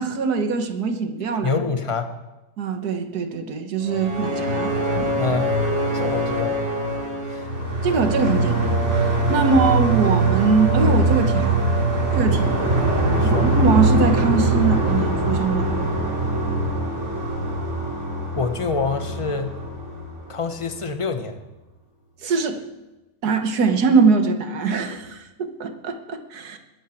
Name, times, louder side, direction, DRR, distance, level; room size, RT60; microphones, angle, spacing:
voice 1, 0.0-1.6 2.6-5.3 7.8-8.8 9.0-11.6 12.1-12.6 13.2-15.7 22.2-22.6 23.2-26.6, right 4 dB, 60° right, 7 dB, 1.7 m, -22 dB
voice 2, 1.4-2.1 5.2-5.5 5.9-6.6 7.3-7.5 9.4-9.6 13.1-13.5 18.3-19.6 20.3-21.4, left 4 dB, 25° left, 7 dB, 0.8 m, -26 dB
sound 1, 3.8-20.7, right 2 dB, 40° right, 3.1 m, -22 dB
22.0 x 10.0 x 4.5 m, 1.0 s
omnidirectional pair, 2.0 m